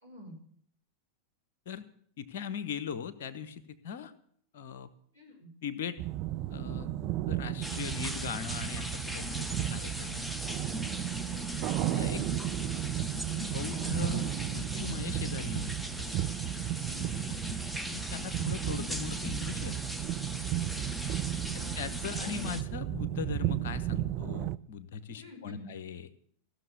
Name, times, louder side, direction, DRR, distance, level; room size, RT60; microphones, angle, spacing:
voice 1, 0.0-0.3 5.1-5.5 11.3-11.6 16.9-17.5 21.0-22.3 25.1-25.7, right 1 dB, 85° right, -2 dB, 4.7 m, -48 dB
voice 2, 2.2-4.1 4.5-4.9 5.6-6.0 6.5-10.2 12.0-12.2 13.3-16.3 17.9-19.7 21.8-26.1, left 7 dB, 55° left, 14 dB, 1.0 m, -39 dB
sound 1, 6.0-24.6, right 14 dB, 40° right, 0.5 m, -34 dB
sound 2, 7.6-22.6, left 1 dB, 5° left, 0.9 m, -39 dB
15.5 x 6.7 x 9.4 m, 0.62 s
figure-of-eight pair, 90°, 0 cm